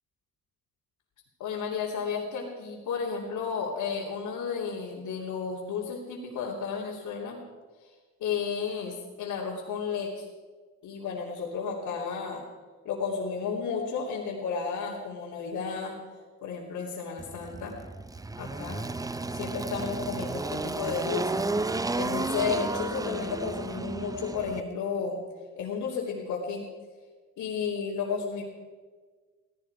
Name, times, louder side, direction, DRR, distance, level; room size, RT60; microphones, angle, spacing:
voice 1, 1.4-7.4 7.8-7.9 8.2-10.2 10.8-12.4 12.8-16.0 16.4-17.8 18.4-18.8 19.3-21.4 21.9-25.2 25.5-26.6 27.4-28.4, left 6 dB, 80° left, -5 dB, 3.0 m, -32 dB
Engine, 17.2-24.6, right 3 dB, 10° right, 0.5 m, -32 dB
17.0 x 16.5 x 4.8 m, 1.4 s
cardioid pair, 90°, 30 cm